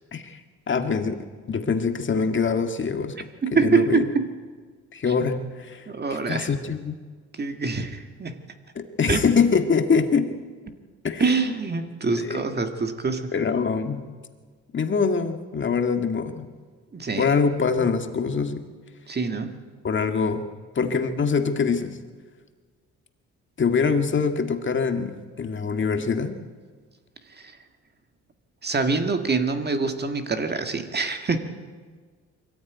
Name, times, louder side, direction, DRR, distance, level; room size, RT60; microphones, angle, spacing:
voice 1, 0.7-4.0 4.9-5.9 6.3-7.0 8.8-10.4 11.0-11.3 12.1-12.4 13.3-14.0 14.7-16.5 17.2-18.6 19.8-20.4 20.8-22.0 23.6-26.4, left 5 dB, 40° left, 6 dB, 1.9 m, -24 dB
voice 2, 3.4-4.3 5.9-6.5 7.3-8.4 9.1-9.2 11.2-13.3 16.9-17.4 19.1-19.6 27.4-27.6 28.6-31.4, right 4 dB, 35° right, 6 dB, 1.8 m, -25 dB
22.5 x 15.0 x 9.3 m, 1.5 s
cardioid pair, 90°, 30 cm